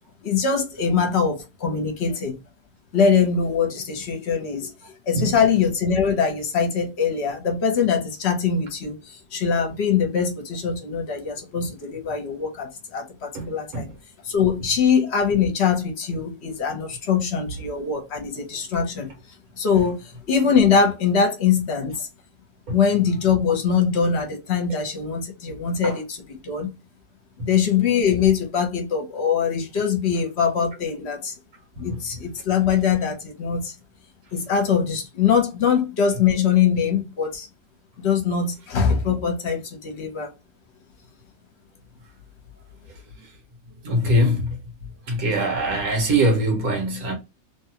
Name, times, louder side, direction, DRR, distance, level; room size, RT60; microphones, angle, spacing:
voice 1, 0.2-2.4 2.9-4.7 5.1-13.9 14.2-19.1 19.6-22.1 22.7-26.2 26.4-26.7 27.4-31.3 31.8-33.7 34.3-37.5 38.0-40.3, left 6 dB, 50° left, 1.1 m, -22 dB
voice 2, 13.3-13.8 22.7-22.8 25.8-26.0 27.4-27.5 31.8-32.0 43.8-44.6 45.1-47.1, equal, 75° right, 1.7 m, -23 dB
3.2 x 2.3 x 2.8 m
omnidirectional pair, 1.5 m